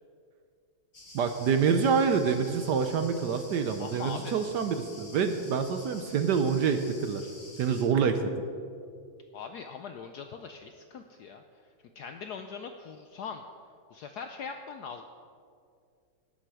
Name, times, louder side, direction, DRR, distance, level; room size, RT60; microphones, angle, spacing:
sound 1, 0.9-7.8, left 2 dB, 40° left, 2.4 m, -49 dB
voice 1, 1.1-7.2 7.6-8.3, right 6 dB, 70° right, 7 dB, 1.1 m, -26 dB
voice 2, 3.8-4.4 9.3-11.4 12.0-13.4 13.9-15.0, left 6 dB, 75° left, 6 dB, 0.9 m, -41 dB
17.5 x 7.8 x 4.8 m, 2.4 s
omnidirectional pair, 2.3 m